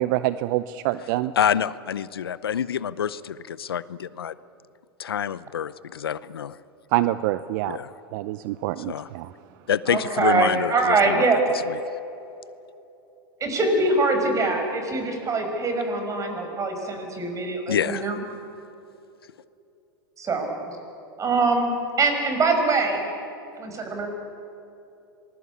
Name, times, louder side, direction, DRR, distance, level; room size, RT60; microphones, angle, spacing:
voice 1, 0.0-1.3 6.9-7.8 8.1-9.3, right 15 dB, 55° right, 14 dB, 0.7 m, -26 dB
voice 2, 1.4-4.3 5.0-6.6 7.7-7.9 8.9-9.1 9.7-11.3 11.7-11.8 17.7-18.1, left 8 dB, 85° left, 18 dB, 0.7 m, -27 dB
voice 3, 9.9-11.4 13.4-18.2 20.2-20.8 21.2-23.0 23.6-24.1, right 3 dB, 25° right, 5 dB, 5.6 m, -23 dB
26.0 x 20.0 x 8.5 m, 2.8 s
hypercardioid pair, 100°, 12 cm